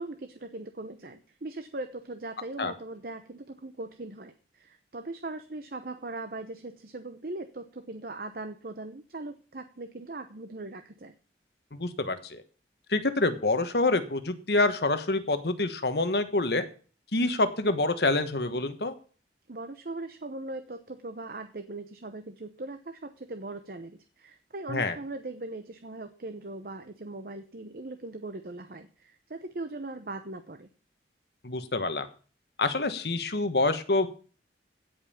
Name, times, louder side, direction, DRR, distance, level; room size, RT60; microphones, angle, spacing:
voice 1, 0.0-11.1 19.5-30.7, right 2 dB, 55° right, 8 dB, 0.9 m, -40 dB
voice 2, 11.7-12.4 12.9-16.6 17.1-18.9 24.7-25.0 31.4-32.1 32.6-34.1, left 2 dB, 65° left, 9 dB, 1.3 m, -27 dB
16.0 x 5.5 x 7.1 m, 0.41 s
head